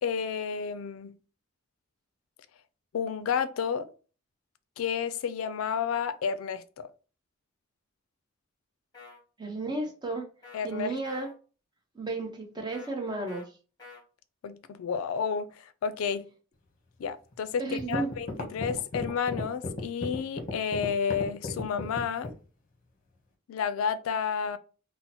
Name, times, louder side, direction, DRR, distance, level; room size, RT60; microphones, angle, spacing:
voice 1, 0.0-1.2 2.9-3.9 4.8-6.9 10.5-10.9 14.4-16.3 17.0-22.3 23.5-24.6, left 7 dB, 80° left, 0.3 m, -31 dB
sound 1, 8.9-9.2 10.4-10.6 11.0-11.3 12.7-12.9 13.3-13.5 13.8-14.0, left 4 dB, 20° left, 1.2 m, -48 dB
voice 2, 9.4-10.3 10.6-11.3 11.9-13.5 17.6-18.1, right 2 dB, 20° right, 0.7 m, -33 dB
sound 2, 17.3-17.4 17.8-22.4, left 2 dB, 45° left, 0.8 m, -34 dB
2.8 x 2.0 x 4.0 m
head